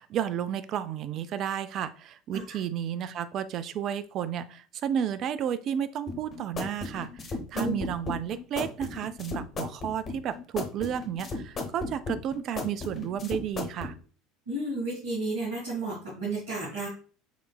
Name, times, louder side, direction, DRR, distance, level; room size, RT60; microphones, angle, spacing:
voice 1, 0.0-7.2 7.5-13.9, right 9 dB, 45° right, 13 dB, 0.3 m, -32 dB
sound 1, 6.1-13.9, left 3 dB, 35° left, 0.8 m, -35 dB
voice 2, 14.5-16.9, right 2 dB, 70° right, -8 dB, 1.6 m, -32 dB
5.1 x 3.2 x 2.2 m, 0.40 s
figure-of-eight pair, 70°, 0 cm